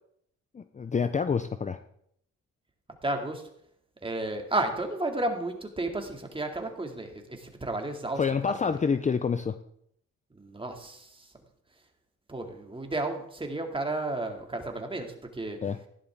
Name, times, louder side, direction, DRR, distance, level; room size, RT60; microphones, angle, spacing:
voice 1, 0.5-1.8 8.2-9.6 15.6-15.8, left 5 dB, 25° left, 11 dB, 0.6 m, -27 dB
voice 2, 3.0-3.4 4.0-8.8 10.3-11.3 12.3-15.6, right 2 dB, 15° right, 3 dB, 2.4 m, -33 dB
15.0 x 11.0 x 3.6 m, 0.70 s
cardioid pair, 90°, 30 cm